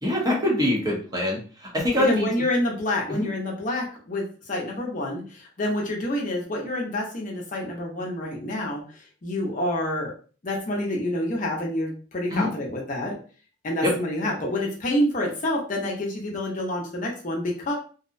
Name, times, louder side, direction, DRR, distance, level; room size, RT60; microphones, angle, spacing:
voice 1, 0.0-2.3 3.1-3.3 12.3-12.5 13.8-13.9, left 1 dB, 20° right, -2 dB, 0.7 m, -24 dB
voice 2, 2.1-8.8 9.2-10.1 10.4-13.2 13.6-17.7, left 1 dB, 45° left, -1 dB, 0.7 m, -28 dB
2.6 x 2.0 x 2.5 m, 0.39 s
head